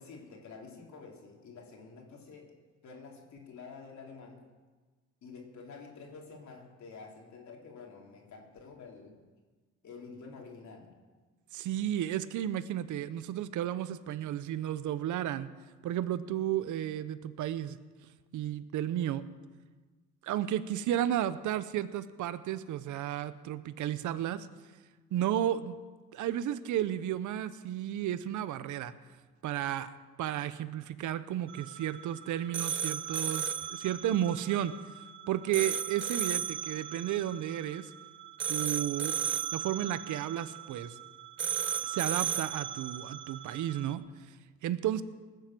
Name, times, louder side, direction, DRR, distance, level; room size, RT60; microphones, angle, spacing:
voice 1, 0.0-2.5 2.8-4.4 5.2-9.2 9.8-11.0, left 4 dB, 70° left, 0 dB, 3.3 m, -49 dB
voice 2, 11.5-15.5 15.8-17.8 18.3-19.2 20.2-24.5 25.1-25.8 26.1-28.9 29.4-29.9 30.2-34.7 35.3-37.9 38.5-39.2 39.5-41.0 41.8-44.0 44.6-45.0, right 11 dB, 80° right, 14 dB, 0.8 m, -33 dB
sound 1, 31.5-43.9, right 8 dB, 40° right, 0.8 m, -36 dB
19.0 x 7.7 x 7.7 m, 1.3 s
cardioid pair, 90°, 30 cm